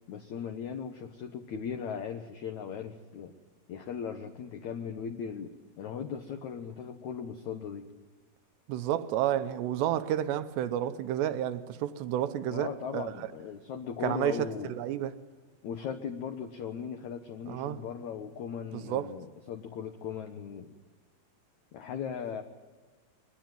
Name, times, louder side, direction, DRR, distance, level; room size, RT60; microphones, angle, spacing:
voice 1, 0.1-3.3 3.7-5.5 5.8-7.8 12.5-14.8 15.6-20.7 21.7-22.4, left 7 dB, 85° left, 1.6 m, -38 dB
voice 2, 8.7-13.3 14.0-15.1 17.5-17.8 18.7-19.1, right 11 dB, 80° right, 3.1 m, -31 dB
22.5 x 20.0 x 9.2 m
omnidirectional pair, 5.0 m